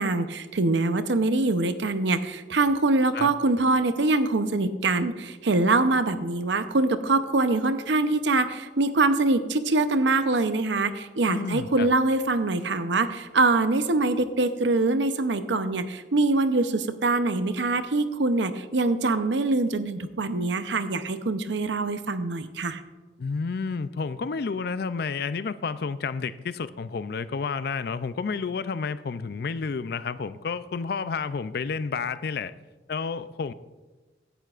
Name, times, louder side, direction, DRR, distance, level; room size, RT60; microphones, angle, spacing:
voice 1, 0.0-22.8, right 2 dB, 80° right, 10 dB, 0.7 m, -24 dB
voice 2, 11.3-11.9 23.2-32.5 32.9-33.5, left 5 dB, 60° left, 14 dB, 0.4 m, -30 dB
16.0 x 11.0 x 2.5 m, 1.3 s
head